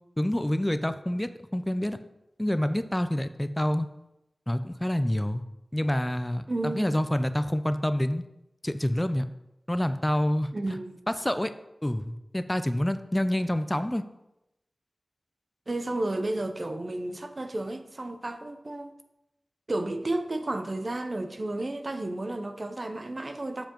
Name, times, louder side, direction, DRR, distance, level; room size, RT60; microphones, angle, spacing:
voice 1, 0.2-2.0 2.4-3.9 4.5-5.4 5.7-8.2 8.6-9.3 9.7-10.8 11.1-11.5 11.8-14.0, left 1 dB, 15° left, 0.4 m, -27 dB
voice 2, 6.5-7.0 10.5-11.0 15.7-18.9 19.7-23.7, right 2 dB, 55° right, 0.7 m, -32 dB
7.5 x 7.0 x 3.0 m
cardioid pair, 45°, 0 cm